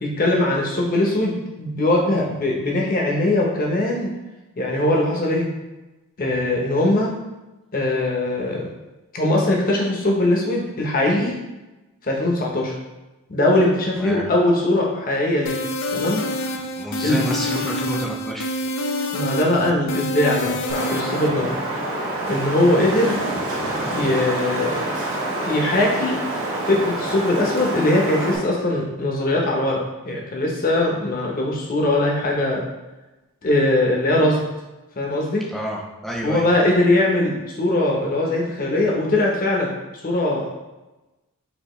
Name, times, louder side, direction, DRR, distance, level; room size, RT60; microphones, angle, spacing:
voice 1, 0.0-4.1 4.6-5.5 6.2-7.1 7.7-8.7 9.1-11.3 12.0-12.7 13.3-15.6 15.9-16.2 17.0-17.2 19.1-21.5 22.3-23.2 23.9-24.8 25.4-26.2 26.6-29.8 30.0-32.6 33.4-34.4 35.0-35.4 36.2-40.6, left 1 dB, 40° left, -2 dB, 0.9 m, -21 dB
voice 2, 14.0-14.3 16.8-18.5 35.5-36.5, equal, ahead, -2 dB, 0.5 m, -29 dB
sound 1, 15.5-21.3, left 1 dB, 55° left, 0.4 m, -27 dB
Wind, 20.7-28.4, right 1 dB, 60° right, 0.9 m, -27 dB
5.1 x 2.8 x 3.1 m, 1.1 s
head